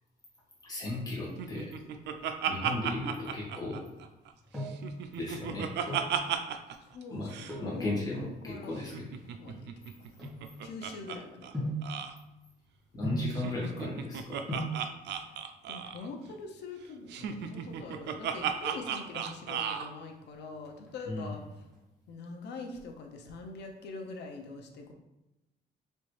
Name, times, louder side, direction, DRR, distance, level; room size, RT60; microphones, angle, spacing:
voice 1, 0.6-1.7 2.5-3.9 5.2-5.7 7.1-7.3 7.6-9.0 9.4-9.6 12.9-14.4 21.1-21.4, left 2 dB, 20° left, -6 dB, 1.4 m, -36 dB
Laughter, 1.4-4.3 4.7-6.8 7.0-7.1 7.3-7.6 8.8-11.2 11.4-11.5 11.8-12.1 13.3-16.1 17.1-19.9, right 8 dB, 80° right, 0.4 m, -35 dB
sound 1, 4.3-4.9 5.7-6.2 7.4-7.8 8.5-10.9 11.5-11.9 13.0-13.4 14.2-14.3 14.5-14.8 16.0-16.5 16.8-16.9 17.1-17.3 17.6-18.0 18.3-19.4 19.8-20.2 20.6-21.8 22.0-22.1, right 1 dB, ahead, 1.5 m, -38 dB
voice 2, 6.8-8.8 9.4-10.2 10.6-11.5 15.2-15.4 15.7-21.6 22.1-24.9, left 3 dB, 75° left, 3 dB, 0.6 m, -44 dB
4.3 x 3.0 x 3.2 m, 0.95 s
cardioid pair, 145°, 18 cm